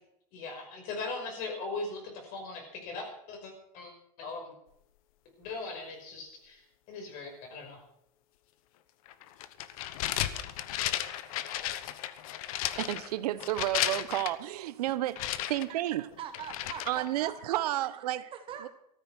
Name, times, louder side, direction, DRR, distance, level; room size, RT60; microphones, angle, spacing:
voice 1, 0.3-3.9 4.2-4.5 5.4-6.6 6.9-7.8, left 3 dB, 45° left, 3 dB, 5.4 m, -39 dB
sound 1, 9.1-14.3 15.2-17.2, left 13 dB, 65° left, 1.1 m, -34 dB
voice 2, 12.8-16.2 16.9-18.2 18.6-18.7, right 14 dB, 85° right, 15 dB, 1.0 m, -31 dB
voice 3, 16.2-17.6 18.2-18.7, right 8 dB, 25° right, 7 dB, 1.2 m, -42 dB
14.0 x 13.5 x 6.0 m, 0.75 s
supercardioid pair, 160°, 19 cm